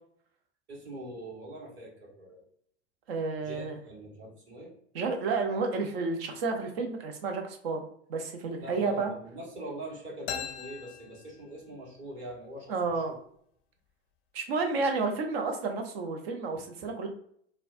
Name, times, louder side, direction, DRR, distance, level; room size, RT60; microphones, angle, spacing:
voice 1, 0.7-2.4 3.4-4.7 8.6-13.0 16.5-16.6, right 1 dB, 30° right, -3 dB, 1.4 m, -43 dB
voice 2, 3.1-3.8 4.9-9.1 12.7-13.2 14.3-17.1, right 4 dB, 55° right, 4 dB, 0.8 m, -31 dB
sound 1, 10.3-12.0, left 8 dB, 35° left, 0.5 m, -40 dB
4.2 x 2.3 x 2.5 m, 0.66 s
figure-of-eight pair, 95°, 36 cm